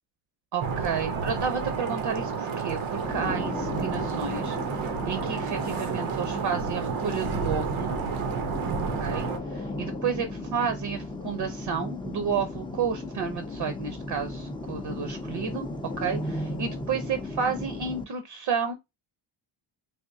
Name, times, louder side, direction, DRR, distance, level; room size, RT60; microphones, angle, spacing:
voice 1, 0.5-4.6 5.0-8.0 9.0-9.3 9.8-15.7 16.0-18.7, right 6 dB, 55° right, 0.7 m, -31 dB
sound 1, 0.6-9.4, right 5 dB, 85° right, 0.9 m, -31 dB
sound 2, 3.0-18.0, left 2 dB, 10° left, 0.4 m, -36 dB
3.5 x 2.6 x 2.6 m
cardioid pair, 120°, 48 cm